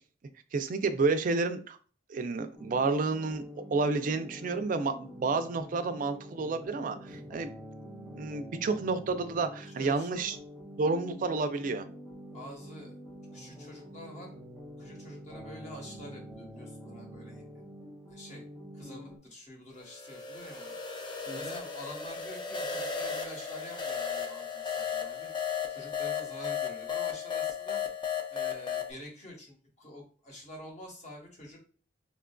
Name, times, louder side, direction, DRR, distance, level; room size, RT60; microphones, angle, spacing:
voice 1, 0.5-1.8 2.1-3.4 3.7-7.5 8.1-10.4 10.8-11.9 21.3-21.5, right 3 dB, 50° right, 9 dB, 0.3 m, -30 dB
sound 1, 2.5-19.2, equal, 5° left, 0.9 m, -46 dB
voice 2, 9.6-10.4 12.3-12.9 13.3-14.4 14.8-17.4 18.1-18.4 18.7-20.8 21.3-25.3 25.7-27.8 28.3-31.6, equal, 40° left, 0 dB, 1.0 m, -47 dB
sound 2, 19.8-28.9, left 7 dB, 25° left, 0.4 m, -35 dB
4.3 x 2.4 x 2.2 m, 0.42 s
head